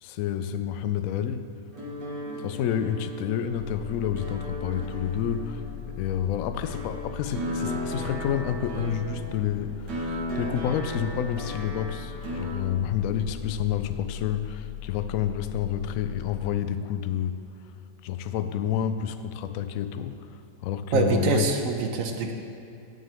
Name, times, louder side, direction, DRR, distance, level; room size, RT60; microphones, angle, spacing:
voice 1, 0.0-1.5 2.4-5.6 5.9-17.4 18.0-21.5, left 9 dB, 70° left, 10 dB, 0.8 m, -29 dB
sound 1, 1.7-12.5, equal, 85° right, 2.2 m, -36 dB
sound 2, 3.5-16.5, left 11 dB, 85° left, 1.2 m, -41 dB
voice 2, 20.9-22.3, right 4 dB, 60° right, 4 dB, 1.1 m, -25 dB
16.5 x 6.5 x 3.4 m, 2.6 s
omnidirectional pair, 1.8 m